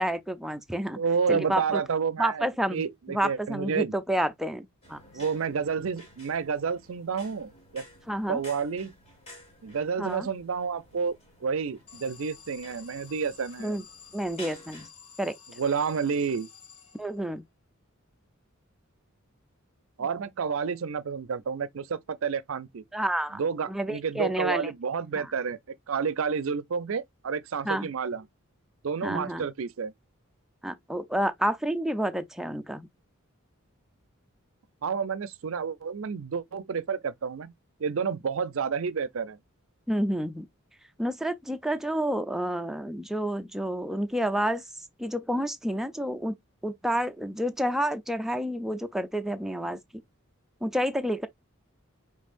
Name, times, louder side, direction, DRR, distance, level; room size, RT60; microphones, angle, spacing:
voice 1, 0.0-1.0 1.3-1.6 2.2-5.0 8.1-8.4 10.0-10.3 13.6-13.8 14.1-14.9 15.2-15.4 17.0-17.4 22.9-23.4 23.7-24.7 25.2-25.3 27.6-27.9 29.0-29.5 30.6-32.9 39.9-40.5 41.0-44.6 45.0-46.4 46.6-49.8 50.6-51.3, right 1 dB, ahead, 0.4 m, -29 dB
voice 2, 1.0-3.9 5.1-7.8 8.3-8.9 9.6-11.1 11.4-13.8 15.6-16.5 20.0-22.8 23.4-25.6 25.9-28.2 28.8-29.9 34.8-37.5 37.8-39.4, right 6 dB, 65° right, 0.5 m, -30 dB
sound 1, 4.8-14.9, left 1 dB, 30° left, 2.0 m, -52 dB
Alarm, 11.9-17.4, left 6 dB, 80° left, 1.1 m, -51 dB
5.4 x 3.2 x 2.5 m
head